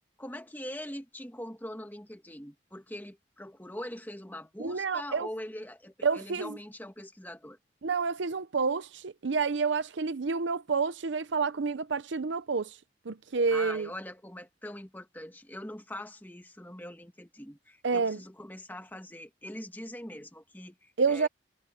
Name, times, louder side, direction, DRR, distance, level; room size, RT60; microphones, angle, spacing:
voice 1, 0.2-7.6 13.5-21.3, left 1 dB, 10° left, 1.6 m, -42 dB
voice 2, 4.6-5.3 6.0-6.6 7.8-12.8 13.0-13.9 17.8-18.2 21.0-21.3, right 5 dB, 75° right, 0.7 m, -29 dB
head